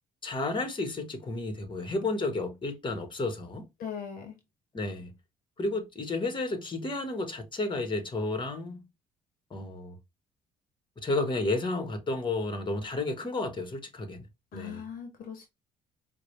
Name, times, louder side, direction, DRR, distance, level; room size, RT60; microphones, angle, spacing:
voice 1, 0.2-3.6 4.7-5.1 5.6-8.8 9.5-9.9 11.0-14.2 14.5-14.8, left 2 dB, 30° left, 1.3 m, -32 dB
voice 2, 3.8-4.4 14.5-15.5, left 7 dB, 60° left, 0.9 m, -39 dB
4.6 x 2.2 x 3.1 m
hypercardioid pair, 50°, 16 cm